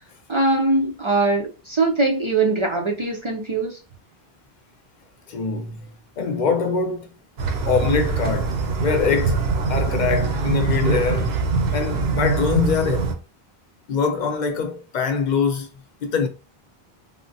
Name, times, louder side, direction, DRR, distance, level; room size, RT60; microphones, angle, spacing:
voice 1, 0.3-3.8, right 3 dB, 45° right, 0.4 m, -21 dB
voice 2, 5.3-5.8 6.2-7.1 7.7-11.4 11.7-13.2 13.9-15.7 16.0-16.3, left 5 dB, 55° left, 0.6 m, -23 dB
sound 1, 7.4-13.1, right 4 dB, 80° right, 0.8 m, -23 dB
3.4 x 2.1 x 2.6 m
omnidirectional pair, 1.1 m